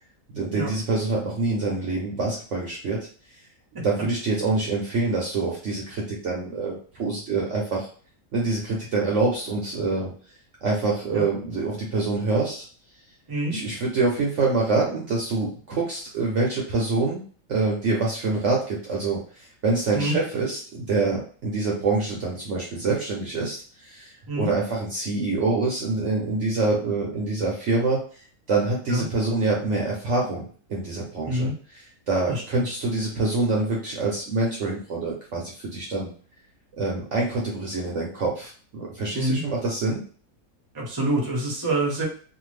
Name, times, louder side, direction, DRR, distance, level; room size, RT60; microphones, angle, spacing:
voice 1, 0.3-3.1 3.8-7.9 8.3-10.1 10.6-12.7 13.5-17.2 17.5-28.0 28.5-31.5 32.1-36.1 36.8-40.0, right 3 dB, 60° right, -2 dB, 0.9 m, -26 dB
voice 2, 13.3-13.6 19.9-20.2 24.3-24.5 28.9-29.1 31.2-31.5 32.3-32.7 39.1-39.4 40.7-42.0, right 1 dB, 20° right, -2 dB, 0.7 m, -26 dB
2.6 x 2.4 x 3.2 m, 0.42 s
omnidirectional pair, 1.7 m